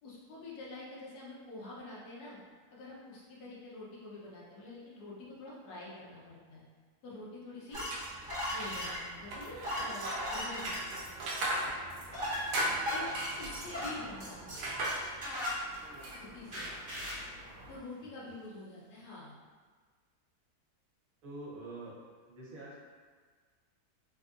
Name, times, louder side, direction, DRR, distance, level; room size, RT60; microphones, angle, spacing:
voice 1, 0.0-2.4 2.7-6.7 7.0-7.8 8.5-11.1 12.9-13.1 13.4-14.6 16.1-16.7 17.7-19.3, left 2 dB, 85° left, -5 dB, 1.3 m, -47 dB
sound 1, 7.7-16.1 16.5-17.2, equal, 40° right, 1.1 m, -38 dB
sound 2, 7.7-17.8, right 1 dB, 90° right, 1.1 m, -39 dB
voice 2, 21.2-22.0 22.3-22.8, right 2 dB, 65° right, -6 dB, 1.2 m, -45 dB
3.4 x 2.6 x 2.4 m, 1.5 s
omnidirectional pair, 1.7 m